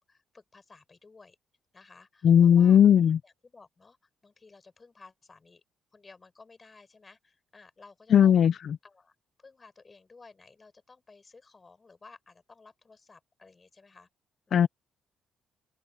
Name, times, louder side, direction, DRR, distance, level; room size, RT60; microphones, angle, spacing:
voice 1, 0.1-1.4 1.7-2.8 3.2-5.6 5.9-8.4 8.8-14.1 14.5-14.7, left 4 dB, 30° left, 6.5 m, -55 dB
voice 2, 2.2-3.2 8.1-8.5 14.5-14.7, left 9 dB, 60° left, 0.5 m, -18 dB
open air
cardioid pair, 90°, 0 cm